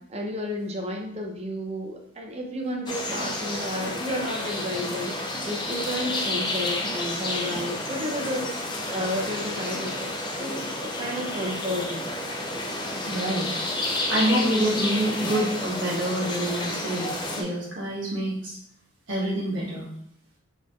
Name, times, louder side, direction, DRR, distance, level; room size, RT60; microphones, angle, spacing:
voice 1, 0.1-8.5 8.9-12.1, equal, 30° right, 1 dB, 0.6 m, -32 dB
sound 1, 2.9-17.4, left 1 dB, 20° left, 0.5 m, -30 dB
voice 2, 13.1-13.5 14.1-18.6 19.1-19.9, right 1 dB, 60° right, -4 dB, 1.5 m, -27 dB
4.0 x 4.0 x 3.1 m, 0.66 s
head